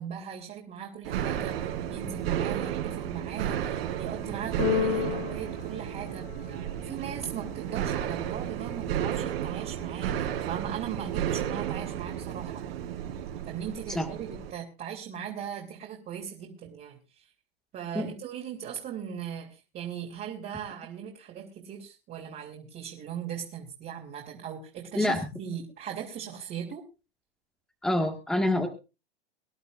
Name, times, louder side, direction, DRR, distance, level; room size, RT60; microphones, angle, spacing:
voice 1, 0.0-1.6 1.9-12.7 13.4-17.3 17.7-26.8, right 8 dB, 30° right, -2 dB, 3.3 m, -39 dB
sound 1, 1.0-14.5, right 10 dB, 70° right, 5.2 m, -33 dB
Keyboard (musical), 4.6-6.7, left 13 dB, 55° left, 2.6 m, -32 dB
voice 2, 27.8-28.7, left 1 dB, ahead, 3 dB, 1.8 m, -26 dB
24.0 x 11.0 x 2.5 m, 0.30 s
hypercardioid pair, 125°, 30 cm